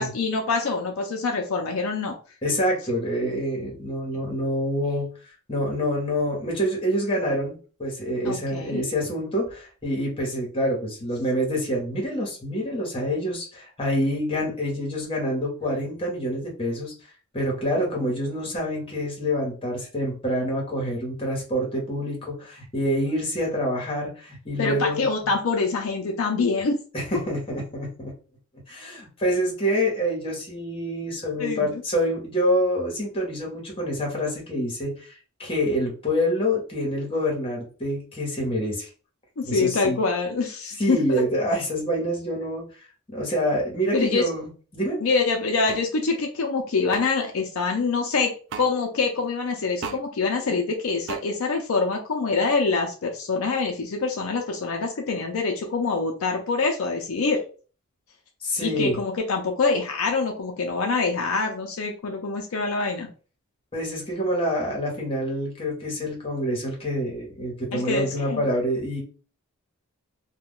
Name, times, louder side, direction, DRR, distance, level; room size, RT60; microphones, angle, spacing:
voice 1, 0.0-2.2 8.3-8.8 24.6-26.8 31.4-31.8 39.4-41.2 43.9-44.2 45.0-57.4 58.6-63.1 67.7-68.4, left 4 dB, 65° left, 2 dB, 0.5 m, -25 dB
voice 2, 2.4-5.1 5.5-16.9 17.3-25.3 26.9-28.1 28.7-38.9 39.4-40.0 40.8-42.6 43.1-45.0 58.4-59.0 63.7-69.0, equal, 25° left, -2 dB, 1.0 m, -27 dB
sound 1, 45.7-45.8 46.9-47.0 48.5-48.7 49.8-50.0 51.1-51.2, right 5 dB, 55° right, 0.3 m, -34 dB
2.3 x 2.2 x 3.6 m, 0.38 s
head